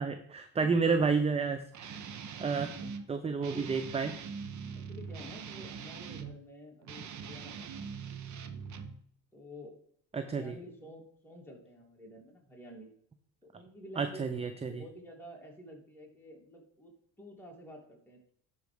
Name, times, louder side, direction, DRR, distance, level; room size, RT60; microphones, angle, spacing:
voice 1, 0.0-2.0 2.4-2.7 3.1-4.1 10.1-10.6 14.0-14.8, right 5 dB, 15° right, 9 dB, 0.5 m, -30 dB
Guitar, 1.7-3.0 3.4-6.4 6.8-9.0, right 6 dB, 40° right, 0.9 m, -42 dB
voice 2, 3.4-3.8 4.7-8.2 9.3-9.8 10.2-12.9 13.4-16.9 17.2-18.3, equal, 5° left, -2 dB, 3.1 m, -50 dB
11.5 x 4.7 x 3.5 m, 0.66 s
hypercardioid pair, 75°, 48 cm